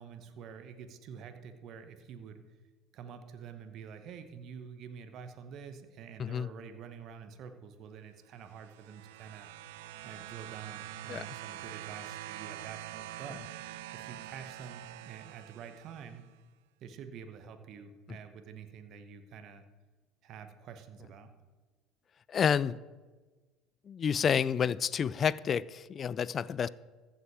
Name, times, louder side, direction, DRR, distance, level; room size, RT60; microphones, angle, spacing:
voice 1, 0.0-2.4 2.9-9.5 10.0-13.4 13.9-16.2 16.8-19.6 20.2-21.3, right 7 dB, 55° right, 1.0 m, -47 dB
sound 1, 8.4-16.2 17.2-17.3, right 14 dB, 75° right, 0.3 m, -45 dB
voice 2, 22.3-22.8 23.9-26.7, left 7 dB, 40° left, 0.3 m, -29 dB
15.0 x 5.8 x 4.8 m
hypercardioid pair, 70°, 0 cm